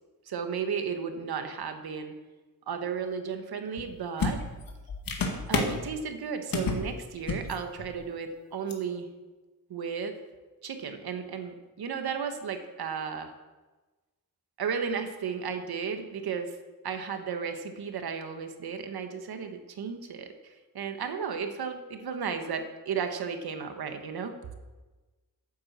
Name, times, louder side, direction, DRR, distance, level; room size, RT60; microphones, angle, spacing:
voice 1, 0.3-2.1 2.7-4.4 5.5-9.1 9.7-10.1 10.6-13.3 14.6-16.6 16.8-24.3, right 6 dB, 80° right, 6 dB, 1.3 m, -34 dB
sound 1, 3.8-3.9 4.2-5.8 6.5-6.9 7.2-7.5 7.8-8.0 8.7-8.8, left 4 dB, 65° left, 1.7 m, -30 dB
9.1 x 8.7 x 7.3 m, 1.2 s
wide cardioid pair, 175°, 37 cm